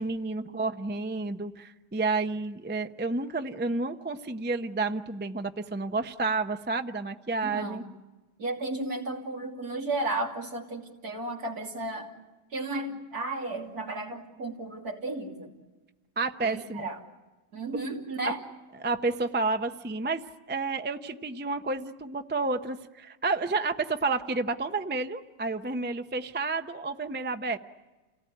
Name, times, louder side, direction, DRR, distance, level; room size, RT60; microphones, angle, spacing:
voice 1, 0.0-7.8 16.2-16.9 18.2-18.3 18.8-27.6, right 3 dB, 10° right, 7 dB, 0.5 m, -30 dB
voice 2, 7.4-7.9 8.4-12.1 12.5-15.5 16.4-17.0 17.5-18.4, right 2 dB, 65° right, 0 dB, 3.3 m, -34 dB
29.5 x 18.5 x 9.2 m, 1.2 s
omnidirectional pair, 1.8 m